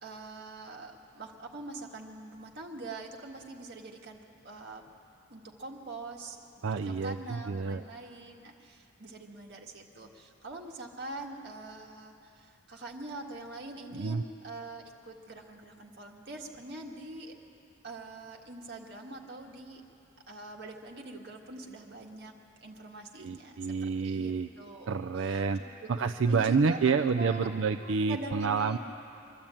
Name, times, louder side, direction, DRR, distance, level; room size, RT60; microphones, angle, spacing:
voice 1, 0.0-4.8 5.3-17.4 17.8-19.8 20.3-22.4 22.6-25.9 26.3-27.5 27.8-28.8, right 2 dB, 55° right, 0 dB, 1.8 m, -44 dB
voice 2, 6.6-7.8 13.9-14.2 23.2-24.5 24.9-25.6 25.9-28.8, right 5 dB, 80° right, 6 dB, 0.5 m, -28 dB
24.5 x 12.5 x 8.9 m, 2.8 s
head